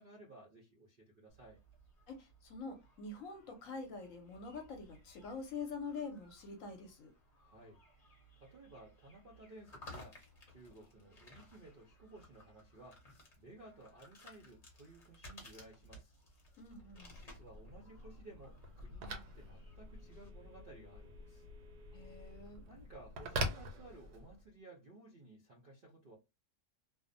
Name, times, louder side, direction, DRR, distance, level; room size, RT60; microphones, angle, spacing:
voice 1, 0.0-1.6 7.4-7.8 8.4-10.2 10.5-16.1 17.2-21.5 22.7-26.2, right 2 dB, 60° right, 0.5 m, -57 dB
sound 1, 1.3-20.3, left 1 dB, 35° left, 0.7 m, -59 dB
voice 2, 2.1-7.1 16.6-17.2 21.9-22.6, left 4 dB, 65° left, 0.9 m, -45 dB
Telephone, 16.6-24.5, right 1 dB, 90° right, 1.1 m, -45 dB
2.6 x 2.0 x 2.6 m
omnidirectional pair, 1.6 m